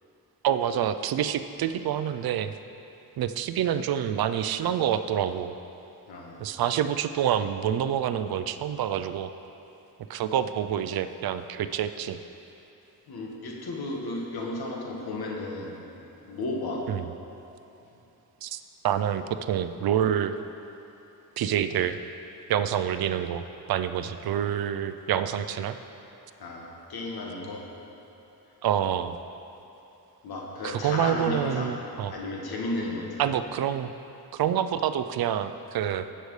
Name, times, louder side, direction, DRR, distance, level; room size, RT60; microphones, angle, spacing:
voice 1, 0.4-2.5 3.2-5.5 6.4-9.3 10.1-12.2 16.9-17.1 18.4-20.3 21.4-22.0 22.5-23.4 23.7-25.8 28.6-29.2 30.6-32.1 33.2-33.9 34.3-36.0, right 9 dB, 70° right, 10 dB, 0.5 m, -27 dB
voice 2, 6.1-6.4 13.1-15.7 16.3-16.9 26.4-27.6 30.2-31.7 32.1-33.2, left 2 dB, 70° left, -1 dB, 1.6 m, -33 dB
16.0 x 6.7 x 3.2 m, 3.0 s
cardioid pair, 105°, 38 cm